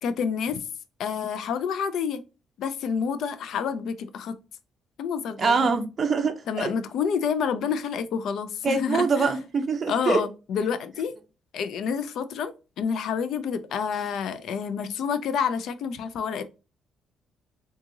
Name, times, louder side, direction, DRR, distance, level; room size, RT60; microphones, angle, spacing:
voice 1, 0.0-0.6 1.0-2.2 2.6-4.3 5.0-5.8 6.5-9.3 9.9-11.1 11.5-16.4, left 6 dB, 75° left, 0.5 m, -28 dB
voice 2, 5.4-6.7 8.6-10.2, right 4 dB, 45° right, 0.6 m, -24 dB
3.5 x 2.9 x 2.6 m
cardioid pair, 90°, 0 cm